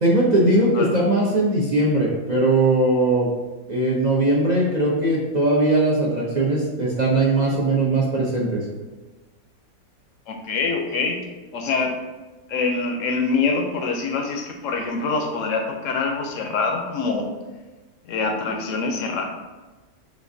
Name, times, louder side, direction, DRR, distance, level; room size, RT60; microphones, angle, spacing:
voice 1, 0.0-3.3 3.7-8.6, right 2 dB, 55° right, -5 dB, 0.4 m, -20 dB
voice 2, 10.3-11.2 11.5-11.9 12.5-17.3 18.1-19.2, left 4 dB, 65° left, 3 dB, 0.9 m, -24 dB
6.4 x 2.5 x 2.6 m, 1.2 s
omnidirectional pair, 1.6 m